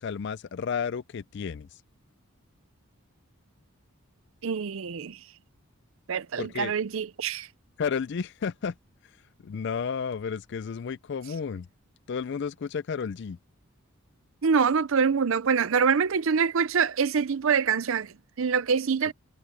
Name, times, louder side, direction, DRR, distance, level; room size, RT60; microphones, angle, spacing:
voice 1, 0.0-1.7 6.4-6.7 7.8-8.7 9.4-11.7 12.1-13.4, left 6 dB, 50° left, 0.4 m, -32 dB
voice 2, 4.4-5.2 6.1-7.5 14.4-19.1, right 6 dB, 65° right, 0.5 m, -25 dB
head